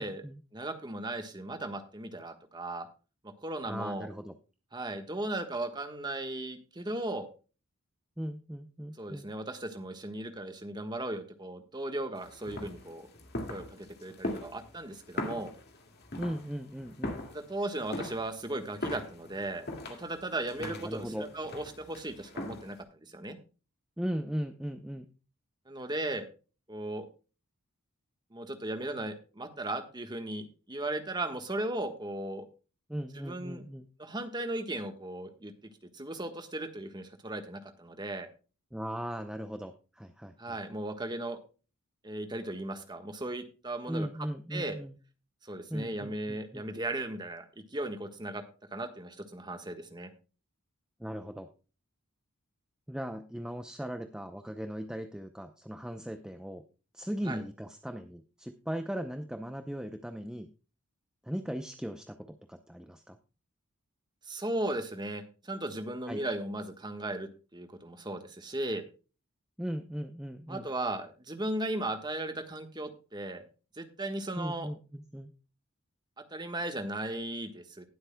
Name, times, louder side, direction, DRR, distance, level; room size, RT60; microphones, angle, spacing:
voice 1, 0.0-0.4 3.7-4.3 8.2-9.3 16.2-17.2 20.6-21.3 24.0-25.1 32.9-33.9 38.7-40.6 43.9-44.9 45.7-46.6 51.0-51.5 52.9-56.6 56.9-60.5 61.2-63.2 66.1-66.2 69.6-70.6 74.4-75.3, equal, 5° right, 7 dB, 0.5 m, -38 dB
voice 2, 0.5-2.9 3.2-4.1 4.7-7.3 9.0-13.1 13.5-15.5 17.3-23.4 25.7-26.3 26.7-27.1 28.3-32.4 33.1-33.6 34.0-35.5 35.9-38.3 40.4-41.4 42.0-44.1 44.5-44.8 45.4-48.4 48.7-50.1 57.2-57.4 64.3-68.8 70.5-73.4 73.8-74.7 76.2-77.8, right 1 dB, 20° right, 7 dB, 1.3 m, -36 dB
sound 1, 12.2-22.8, left 1 dB, 45° left, 2.0 m, -41 dB
19.5 x 7.9 x 2.2 m, 0.34 s
head